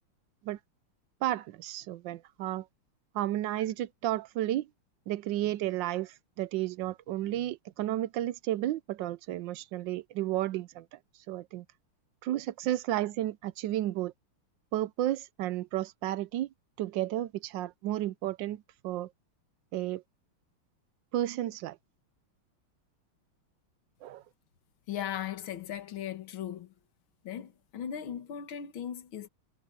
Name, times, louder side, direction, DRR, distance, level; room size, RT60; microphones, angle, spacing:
voice 1, 1.2-2.7 3.1-4.7 5.1-11.0 11.3-11.6 12.2-14.1 14.7-16.5 16.8-19.1 19.7-20.0 21.1-21.8 24.0-24.2, right 13 dB, 75° right, 1.1 m, -32 dB
voice 2, 24.9-26.7 27.2-29.3, left 9 dB, 70° left, 2.3 m, -38 dB
omnidirectional pair, 2.4 m